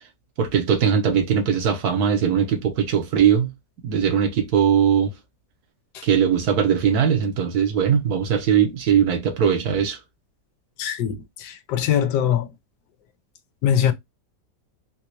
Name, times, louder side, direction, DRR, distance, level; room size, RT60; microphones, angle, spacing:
voice 1, 0.4-3.5 3.8-5.1 6.0-10.0, right 8 dB, 70° right, 1.3 m, -20 dB
voice 2, 10.8-12.5 13.6-13.9, left 9 dB, 85° left, 1.2 m, -22 dB
4.0 x 2.2 x 2.9 m
omnidirectional pair, 1.8 m